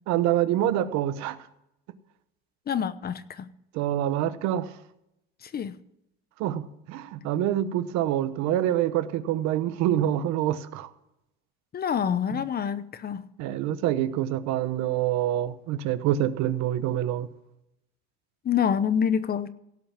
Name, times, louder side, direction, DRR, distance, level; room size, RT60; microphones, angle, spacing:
voice 1, 0.1-1.4 3.7-4.7 6.4-10.9 12.3-12.4 13.4-17.3, right 12 dB, 65° right, 1.1 m, -26 dB
voice 2, 2.7-3.5 5.4-5.8 11.7-13.3 18.4-19.5, left 8 dB, 30° left, 0.8 m, -27 dB
17.0 x 6.0 x 7.1 m
supercardioid pair, 110°, 30 cm